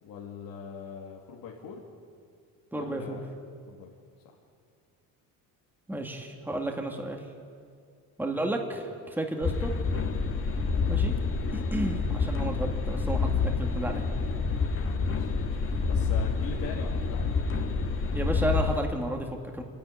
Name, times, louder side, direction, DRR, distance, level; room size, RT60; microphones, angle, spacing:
voice 1, 0.0-1.8 2.7-3.2 3.7-3.9 4.2-4.4 12.1-12.4 14.7-17.4, left 6 dB, 70° left, -3 dB, 2.6 m, -43 dB
voice 2, 2.7-3.2 5.9-7.2 8.2-9.7 10.9-11.1 11.5-14.1 18.1-19.6, right 1 dB, 5° right, 2 dB, 2.1 m, -32 dB
sound 1, 9.4-18.8, left 4 dB, 35° left, 1.8 m, -28 dB
27.0 x 10.5 x 9.8 m, 2.3 s
cardioid pair, 120°, 36 cm